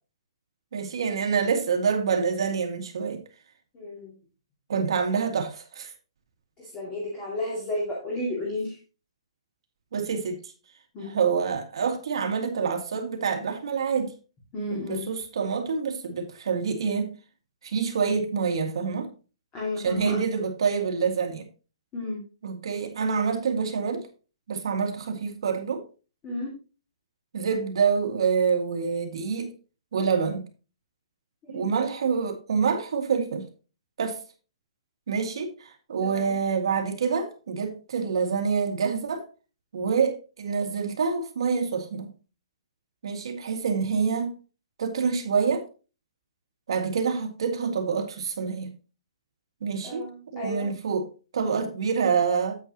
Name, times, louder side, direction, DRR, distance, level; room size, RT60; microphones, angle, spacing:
voice 1, 0.7-3.2 4.7-5.9 9.9-10.4 11.0-14.1 14.7-17.1 17.6-19.1 19.8-21.5 22.4-24.0 24.5-25.8 27.3-29.5 29.9-30.5 31.5-33.5 34.0-34.2 35.1-39.2 39.7-42.1 43.0-44.4 44.8-45.6 46.7-48.7 49.6-50.1 50.3-51.1 51.3-52.6, right 6 dB, 55° right, 2.0 m, -26 dB
voice 2, 3.7-4.1 6.6-8.8 10.9-11.2 14.5-15.1 19.5-20.2 21.9-22.2 26.2-26.5 31.4-31.7 36.0-36.4 49.8-50.7, left 2 dB, 15° left, 2.3 m, -33 dB
8.8 x 8.8 x 2.9 m
hypercardioid pair, 175°, 3 cm